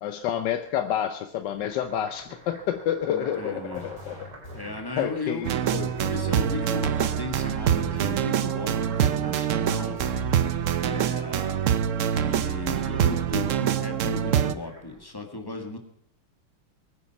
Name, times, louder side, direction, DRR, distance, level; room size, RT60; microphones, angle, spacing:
voice 1, 0.0-4.1 5.0-5.9, left 10 dB, 65° left, 8 dB, 1.3 m, -29 dB
sound 1, 1.2-15.1, right 2 dB, 55° right, 3.6 m, -48 dB
voice 2, 3.1-3.9 4.5-10.0 10.7-11.7 12.1-15.8, left 2 dB, 10° left, 3 dB, 1.8 m, -36 dB
sound 2, 3.7-4.9 5.7-6.9 7.7-8.9 9.7-10.9, left 3 dB, 50° left, 4.3 m, -44 dB
sound 3, 5.4-14.6, right 9 dB, 75° right, 0.7 m, -25 dB
21.0 x 9.6 x 5.9 m, 0.70 s
omnidirectional pair, 2.2 m